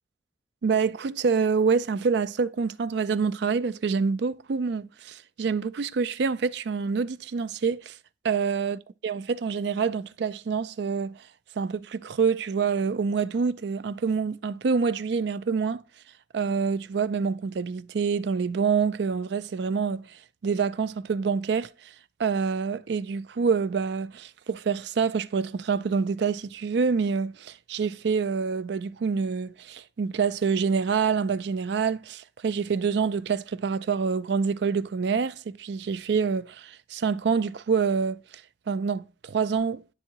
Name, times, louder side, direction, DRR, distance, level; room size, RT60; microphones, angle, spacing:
voice 1, 0.6-8.0 8.2-11.2 11.6-15.8 16.3-21.9 22.2-38.2 38.7-39.8, right 5 dB, 60° right, 0.4 m, -26 dB
10.5 x 3.6 x 2.9 m
head